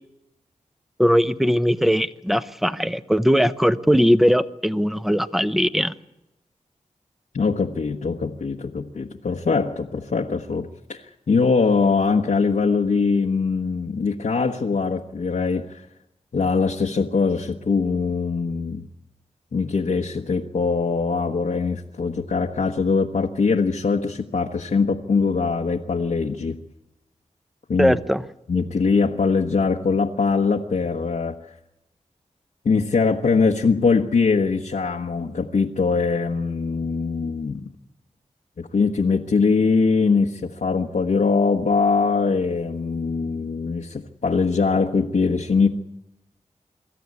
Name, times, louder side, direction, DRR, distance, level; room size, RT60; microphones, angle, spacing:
voice 1, 1.0-5.9 27.8-28.2, equal, ahead, 13 dB, 0.9 m, -19 dB
voice 2, 7.3-15.8 16.3-18.8 19.5-26.6 27.7-28.0 28.5-31.3 32.6-37.7 38.6-45.7, left 4 dB, 75° left, -1 dB, 1.2 m, -22 dB
24.0 x 13.5 x 9.7 m, 0.91 s
cardioid pair, 55°, 13 cm